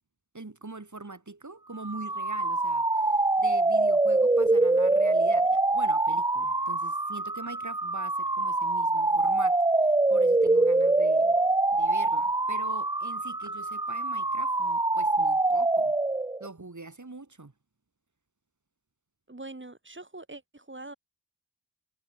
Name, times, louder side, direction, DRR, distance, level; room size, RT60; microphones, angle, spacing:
voice 1, 0.3-11.4 11.7-16.0 16.4-17.5, right 3 dB, 50° right, 7.4 m, -43 dB
sound 1, 1.8-16.5, right 2 dB, 10° right, 0.4 m, -24 dB
voice 2, 19.3-20.9, right 2 dB, 30° right, 3.8 m, -43 dB
wide cardioid pair, 55°, 38 cm